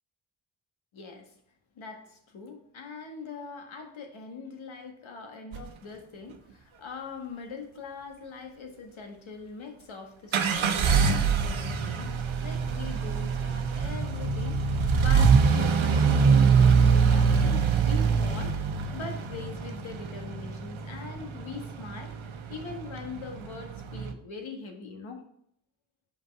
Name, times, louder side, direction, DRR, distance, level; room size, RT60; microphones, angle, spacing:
voice 1, 0.9-1.3 1.7-18.6 18.9-22.2 22.5-25.2, left 4 dB, 75° left, 3 dB, 1.6 m, -42 dB
sound 1, 5.5-5.7 10.3-24.1, right 5 dB, 80° right, 0.9 m, -24 dB
6.6 x 5.5 x 4.6 m, 0.70 s
cardioid pair, 80°, 48 cm